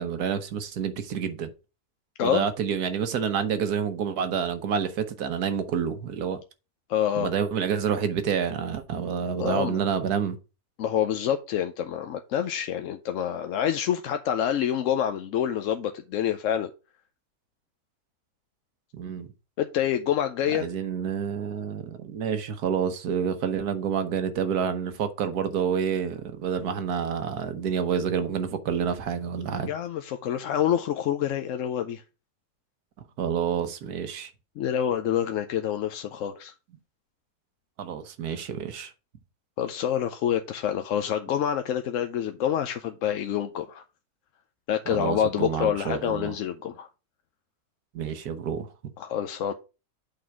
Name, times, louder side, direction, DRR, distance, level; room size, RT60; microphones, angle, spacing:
voice 1, 0.0-1.5 2.2-6.4 7.2-10.4 18.9-19.3 20.5-29.7 33.2-34.3 37.8-38.9 44.9-46.3 47.9-48.7, right 7 dB, 80° right, 1.5 m, -28 dB
voice 2, 6.9-7.3 9.4-9.9 10.8-16.7 19.6-20.7 29.6-32.0 34.6-36.5 39.6-43.8 44.7-46.9 49.0-49.5, left 10 dB, 65° left, 0.9 m, -27 dB
8.5 x 3.9 x 4.6 m
omnidirectional pair, 1.6 m